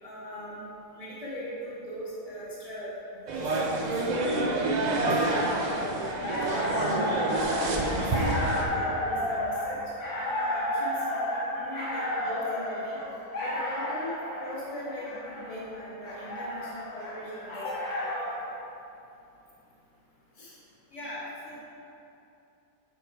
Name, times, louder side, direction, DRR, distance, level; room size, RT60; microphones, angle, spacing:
voice 1, 0.0-0.6 0.9-6.9 7.3-13.0 13.4-14.1 14.4-17.8 18.4-18.5 20.3-20.6, left 1 dB, 25° left, -8 dB, 1.6 m, -40 dB
sound 1, 3.3-8.6, right 2 dB, 85° right, 0.3 m, -27 dB
sound 2, 6.0-18.5, left 1 dB, 80° left, 2.0 m, -32 dB
voice 2, 20.9-21.6, left 1 dB, 55° left, -8 dB, 1.7 m, -39 dB
7.0 x 4.7 x 4.6 m, 2.8 s
omnidirectional pair, 1.6 m